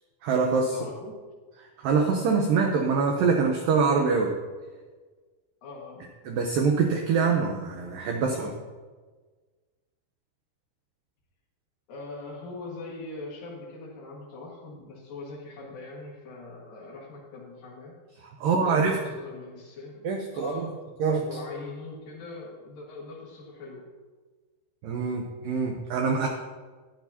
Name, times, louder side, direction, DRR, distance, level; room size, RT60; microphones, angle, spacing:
voice 1, 0.2-0.8 1.6-4.3 6.3-8.5 18.2-19.0 20.0-20.7 21.0-21.2 24.8-26.3, right 5 dB, 80° right, 2 dB, 2.0 m, -24 dB
voice 2, 0.7-1.3 5.6-6.1 8.4-8.5 11.9-18.0 18.6-20.1 20.3-20.8 21.2-23.9, left 3 dB, 60° left, -3 dB, 3.2 m, -41 dB
13.0 x 10.5 x 2.8 m, 1.4 s
omnidirectional pair, 4.9 m